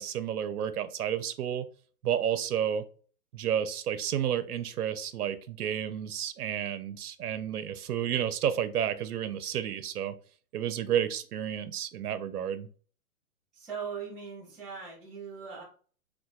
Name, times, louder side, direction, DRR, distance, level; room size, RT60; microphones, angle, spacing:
voice 1, 0.0-1.7 2.0-2.8 3.3-10.1 10.5-12.7, right 9 dB, 85° right, 11 dB, 0.6 m, -31 dB
voice 2, 13.5-15.6, right 6 dB, ahead, -9 dB, 0.4 m, -40 dB
4.5 x 2.2 x 2.3 m, 0.41 s
hypercardioid pair, 180°, 44 cm